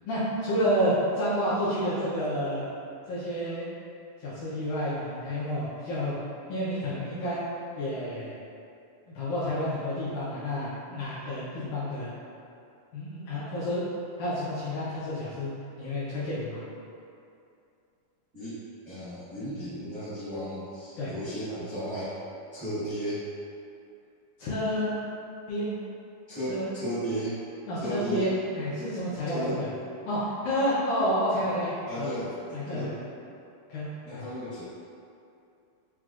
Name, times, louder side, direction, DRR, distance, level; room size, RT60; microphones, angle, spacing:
voice 1, 0.1-2.7 3.1-3.7 4.2-6.2 6.5-7.4 7.8-8.3 9.2-12.1 12.9-13.9 14.2-15.5 15.8-16.6 21.0-21.1 24.4-25.0 25.5-25.8 26.5-26.7 27.7-29.7 30.1-31.7 32.0-32.1 32.5-32.9 33.7-34.2, equal, 75° left, -10 dB, 1.9 m, -29 dB
voice 2, 18.8-22.1 22.5-23.2 26.3-27.3 27.8-28.3 29.3-29.6 31.9-32.3 32.7-32.9 34.0-34.6, equal, 45° right, -16 dB, 1.0 m, -34 dB
6.0 x 2.3 x 2.4 m, 2.5 s
omnidirectional pair, 4.0 m